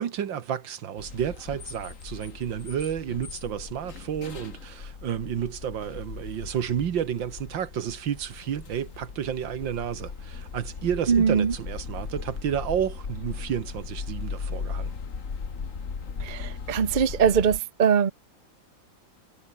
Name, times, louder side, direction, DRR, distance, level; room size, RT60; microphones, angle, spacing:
voice 1, 0.0-14.9, right 9 dB, 75° right, 2.0 m, -31 dB
sound 1, 1.0-17.6, left 5 dB, 40° left, 2.2 m, -38 dB
voice 2, 11.1-11.5 16.2-18.1, right 7 dB, 35° right, 0.7 m, -22 dB
omnidirectional pair, 2.1 m